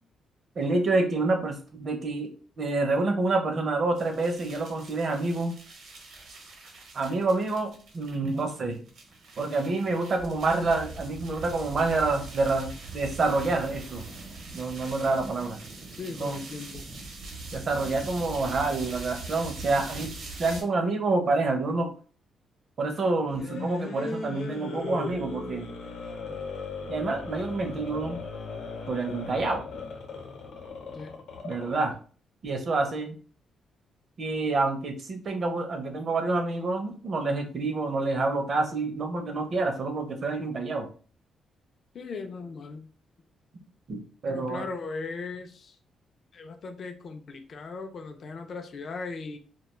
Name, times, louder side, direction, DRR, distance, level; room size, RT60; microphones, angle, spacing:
voice 1, 0.6-2.3 2.6-5.6 6.9-8.8 9.4-14.0 14.5-15.6 16.2-16.4 17.5-20.1 20.4-21.9 22.8-25.7 26.9-28.2 28.9-29.6 31.4-31.9 32.4-33.2 34.2-40.9 43.9-44.7, right 3 dB, 40° right, 5 dB, 0.5 m, -27 dB
sound 1, 4.0-20.6, right 3 dB, 70° right, 0.8 m, -42 dB
voice 2, 16.0-16.8 19.7-19.8 30.9-31.2 41.9-42.9 44.3-45.8 46.3-49.4, left 4 dB, 45° left, 6 dB, 0.4 m, -38 dB
sound 2, 23.2-31.9, left 4 dB, 75° left, 0.7 m, -37 dB
2.3 x 2.2 x 3.0 m, 0.40 s
cardioid pair, 140°, 0 cm